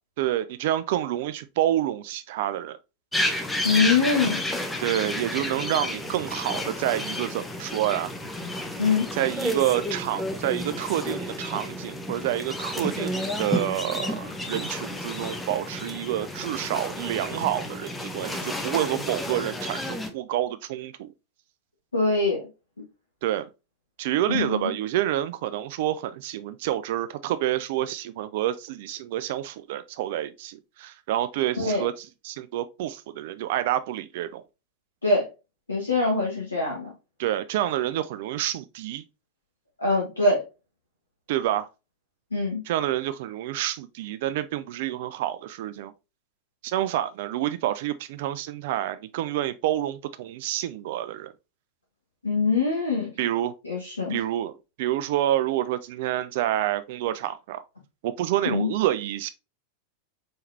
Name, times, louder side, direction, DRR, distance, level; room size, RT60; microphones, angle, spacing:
voice 1, 0.2-2.8 4.8-8.1 9.1-21.1 23.2-23.5 24.0-34.4 37.2-39.0 41.3-41.7 42.7-45.9 46.6-51.3 53.2-53.5 54.1-54.5 54.8-57.6 58.0-59.3, right 13 dB, 50° right, 0.3 m, -28 dB
sound 1, 3.1-20.1, left 1 dB, 10° left, 0.8 m, -31 dB
voice 2, 3.6-4.4 8.8-9.0 21.9-22.4 24.3-24.7 31.6-31.8 35.0-35.2 35.7-36.9 39.8-40.4 42.3-42.6 52.2-53.1 53.6-54.2 58.5-58.7, left 3 dB, 80° left, 1.3 m, -23 dB
4.3 x 3.8 x 2.5 m
figure-of-eight pair, 90°, 0 cm